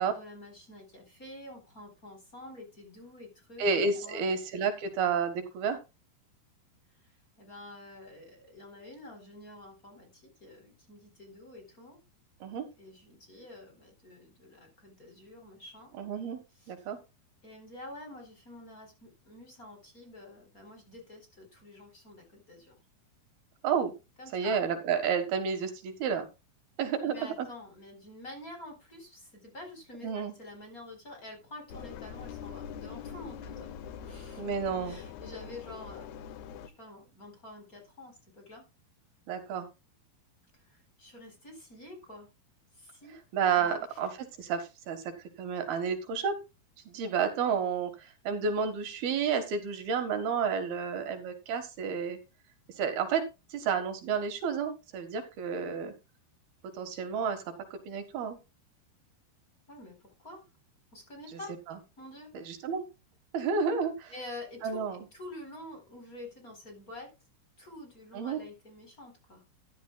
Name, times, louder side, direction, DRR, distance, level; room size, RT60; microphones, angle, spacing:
voice 1, 0.0-3.7 4.0-4.3 6.9-12.0 12.7-15.9 16.5-16.9 17.4-22.7 24.2-24.6 27.0-33.7 34.0-34.4 34.8-36.1 36.8-38.6 40.5-42.3 42.7-43.2 43.6-44.0 59.7-60.4 60.9-61.6 62.0-62.3 64.1-67.1 67.6-69.4, left 1 dB, 20° left, 3 dB, 4.3 m, -48 dB
voice 2, 3.6-5.8 12.4-12.6 16.0-16.4 16.7-17.0 23.6-23.9 24.3-26.3 26.8-27.5 30.0-30.3 34.4-35.0 39.3-39.7 43.3-44.1 44.4-46.3 46.9-52.2 52.8-53.2 53.5-55.9 56.7-57.5 57.9-58.4 62.3-62.8 63.3-64.1 64.6-65.0 68.1-68.4, right 6 dB, 75° right, 8 dB, 3.4 m, -30 dB
Engine, 31.7-36.7, left 8 dB, 80° left, 1.7 m, -43 dB
13.5 x 11.0 x 2.3 m, 0.26 s
omnidirectional pair, 4.5 m